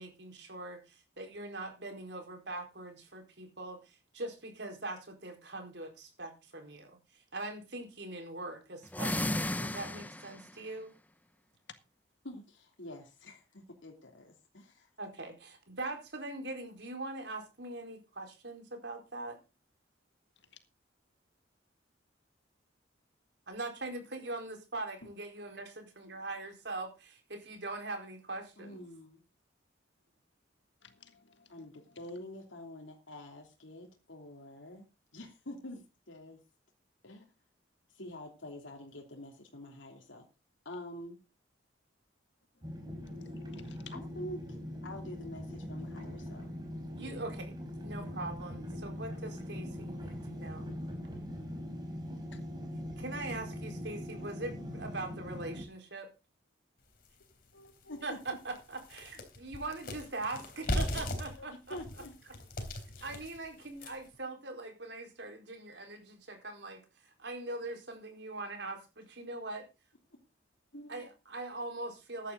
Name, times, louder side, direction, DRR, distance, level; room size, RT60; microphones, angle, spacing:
voice 1, 0.0-7.0 7.3-10.9 15.0-19.4 23.5-28.8 46.9-47.6 47.8-50.7 53.0-56.1 58.0-61.8 63.0-69.6 70.9-72.3, right 2 dB, 65° right, 4 dB, 4.4 m, -42 dB
sound 1, 8.9-10.5, left 1 dB, 10° left, 0.6 m, -34 dB
voice 2, 12.2-14.9 28.6-29.2 31.5-34.9 35.1-36.4 37.0-37.3 37.9-40.2 40.6-41.2 43.9-46.5 57.9-58.2 61.3-62.1 63.0-63.1, left 1 dB, 85° left, 0 dB, 3.1 m, -47 dB
voice 3, 30.8-31.5 43.3-43.8 47.1-47.2 57.5-58.0 70.7-71.0, left 1 dB, 70° left, 8 dB, 1.8 m, -55 dB
sound 2, 42.6-55.6, equal, 20° right, 4.4 m, -41 dB
sound 3, 57.0-57.1 57.6-57.7 58.1-64.2, left 1 dB, 50° left, 3.5 m, -38 dB
15.0 x 11.0 x 3.9 m, 0.29 s
head